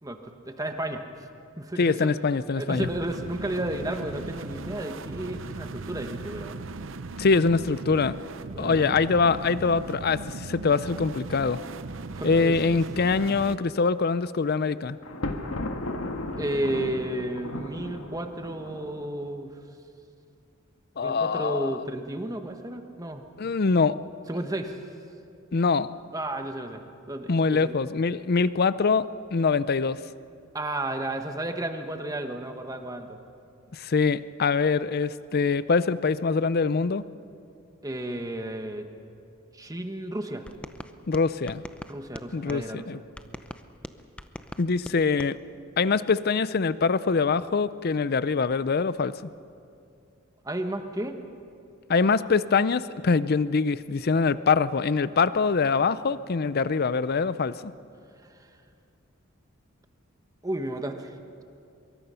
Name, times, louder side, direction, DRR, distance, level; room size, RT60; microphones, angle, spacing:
voice 1, 0.0-1.3 1.6-2.1 2.5-6.6 8.5-9.0 12.1-12.8 16.4-19.5 21.0-23.2 24.3-24.8 26.1-26.8 27.1-27.7 30.5-33.2 37.8-38.8 39.5-40.5 41.9-43.1 50.4-51.2 58.4-58.5 60.4-61.1, right 1 dB, 15° right, 6 dB, 1.3 m, -33 dB
voice 2, 1.8-2.9 7.2-8.1 8.6-11.6 12.2-15.0 21.0-21.8 23.4-24.0 25.5-25.9 27.3-29.1 29.3-30.0 33.7-37.0 41.1-41.6 42.3-43.0 44.6-45.4 45.8-49.1 51.9-57.7, left 4 dB, 50° left, 16 dB, 0.5 m, -24 dB
sound 1, 2.7-13.6, right 3 dB, 65° right, 0.7 m, -38 dB
Thunder, 15.0-19.1, left 2 dB, 85° left, 1.5 m, -35 dB
sound 2, 40.5-42.7 43.2-45.3, equal, 5° left, 0.6 m, -42 dB
24.0 x 22.5 x 5.7 m, 2.5 s
head